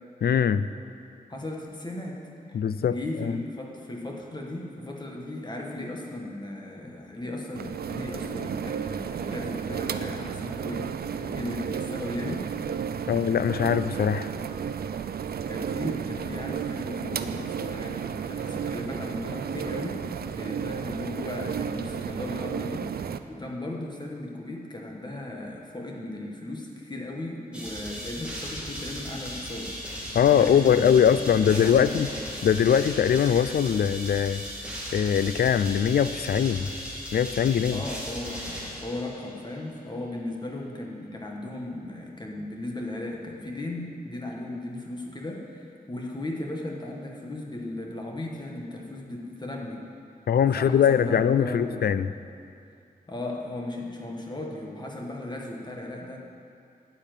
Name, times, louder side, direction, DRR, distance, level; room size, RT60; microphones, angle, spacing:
voice 1, 0.2-0.7 2.5-3.3 13.1-14.3 30.1-32.1 32.4-34.4 34.9-36.7 37.1-37.8 50.3-52.1, left 8 dB, 80° left, 14 dB, 0.4 m, -22 dB
voice 2, 1.3-10.8 11.1-12.5 15.5-29.8 30.3-31.9 37.7-49.8 50.6-52.0 53.1-56.2, left 1 dB, 30° left, 0 dB, 1.4 m, -36 dB
sound 1, 7.6-23.2, right 7 dB, 80° right, 0.5 m, -33 dB
sound 2, 27.5-39.4, equal, 5° right, 2.9 m, -37 dB
9.8 x 7.1 x 9.2 m, 2.4 s
wide cardioid pair, 110°, 16 cm